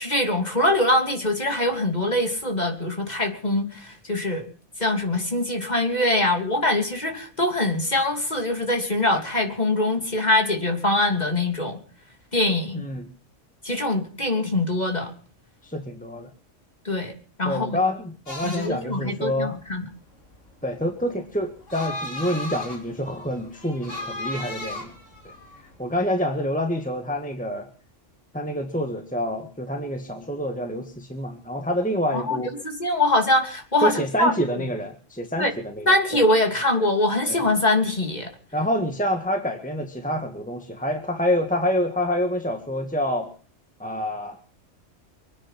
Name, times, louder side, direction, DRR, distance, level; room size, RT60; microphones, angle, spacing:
voice 1, 0.0-4.4 4.8-11.8 12.3-12.8 13.6-15.1 16.8-17.1 17.4-17.8 18.4-19.9 32.1-32.4 32.6-34.6 35.4-35.5 35.9-38.3, left 1 dB, 35° left, 3 dB, 3.2 m, -23 dB
voice 2, 12.8-13.1 15.6-16.3 17.5-19.6 20.6-24.9 25.8-27.7 28.3-32.5 33.8-36.2 37.3-37.4 38.5-43.3 43.8-44.4, equal, 5° left, 5 dB, 1.8 m, -27 dB
sound 1, 18.3-26.0, left 2 dB, 75° left, 3.9 m, -36 dB
24.5 x 9.9 x 5.8 m, 0.41 s
omnidirectional pair, 1.3 m